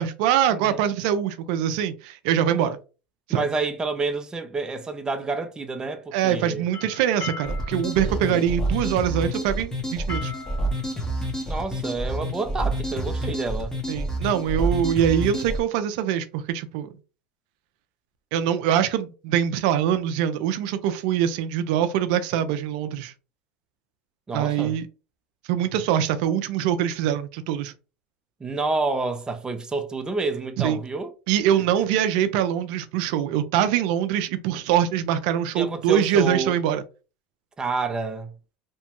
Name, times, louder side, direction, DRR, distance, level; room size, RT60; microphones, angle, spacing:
voice 1, 0.0-2.8 3.3-3.4 6.1-10.3 13.9-16.9 18.3-23.1 24.3-24.9 25.5-27.7 30.6-30.8 31.3-36.8, right 10 dB, 70° right, 0.4 m, -23 dB
voice 2, 3.3-6.6 8.0-8.5 11.5-13.7 24.3-24.8 28.4-31.1 31.5-31.9 35.5-36.5 37.6-38.3, right 3 dB, 15° right, 0.5 m, -29 dB
sound 1, 6.6-12.3, left 4 dB, 65° left, 1.6 m, -40 dB
sound 2, 7.4-15.6, right 1 dB, 15° left, 0.9 m, -28 dB
2.9 x 2.2 x 2.9 m
supercardioid pair, 105°, 5 cm